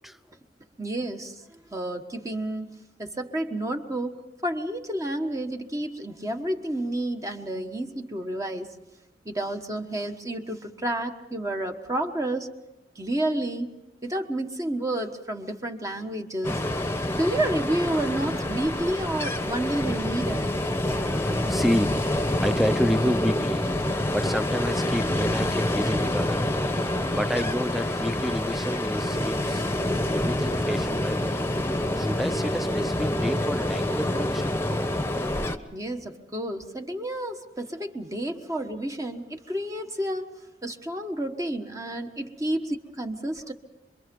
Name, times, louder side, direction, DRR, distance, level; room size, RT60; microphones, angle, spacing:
voice 1, 0.8-8.7 9.2-12.5 12.9-13.7 14.0-16.6 17.1-20.5 35.7-43.5, right 1 dB, 20° right, 4 dB, 1.3 m, -30 dB
Ocean, 16.4-35.6, left 1 dB, 15° left, 1.1 m, -27 dB
voice 2, 20.8-29.6 30.1-31.4 31.9-34.5 42.5-42.6, equal, ahead, 11 dB, 0.8 m, -30 dB
27.0 x 22.5 x 5.4 m, 0.96 s
head